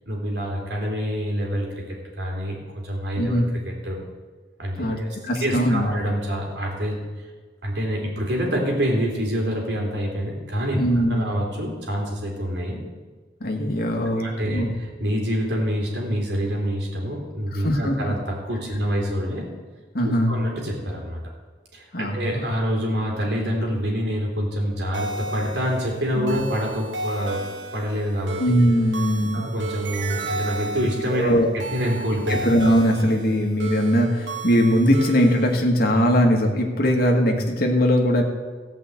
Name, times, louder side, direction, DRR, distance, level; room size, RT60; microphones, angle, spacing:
voice 1, 0.0-1.7 2.2-4.0 4.6-7.0 7.6-10.8 11.1-12.8 14.2-19.5 20.3-21.2 21.7-27.4 27.7-28.4 29.3-32.4, equal, 65° right, -1 dB, 3.2 m, -26 dB
voice 2, 3.2-3.5 4.8-5.0 5.3-5.9 10.8-11.3 13.4-14.7 17.5-18.1 19.9-20.3 21.9-22.5 26.1-26.4 28.4-29.5 31.1-31.5 32.3-38.2, equal, 55° left, 1 dB, 1.9 m, -20 dB
sound 1, 24.9-35.6, right 2 dB, 80° right, 1.3 m, -33 dB
15.5 x 5.5 x 8.2 m, 1.4 s
head